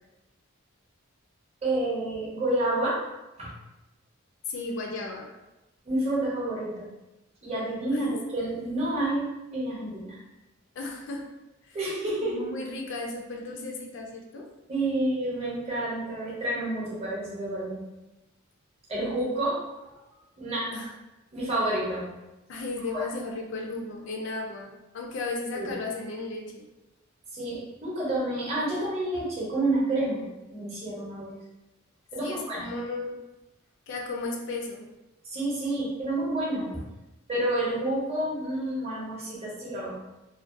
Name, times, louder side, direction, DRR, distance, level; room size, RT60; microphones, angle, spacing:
voice 1, 1.6-3.0 3.4-3.5 5.8-6.9 7.4-10.2 11.7-12.4 14.7-17.8 18.9-19.6 20.4-20.7 21.3-22.1 22.9-23.0 25.5-25.7 27.3-31.3 32.1-32.7 35.2-36.8 37.3-40.0, right 1 dB, 30° right, -6 dB, 0.7 m, -29 dB
voice 2, 4.5-5.3 7.9-8.2 10.8-11.3 11.6-11.8 12.2-14.5 20.7-20.9 22.5-26.7 32.2-33.2 33.9-34.9, left 3 dB, 60° left, 1 dB, 0.3 m, -35 dB
2.4 x 2.2 x 2.4 m, 1.0 s
head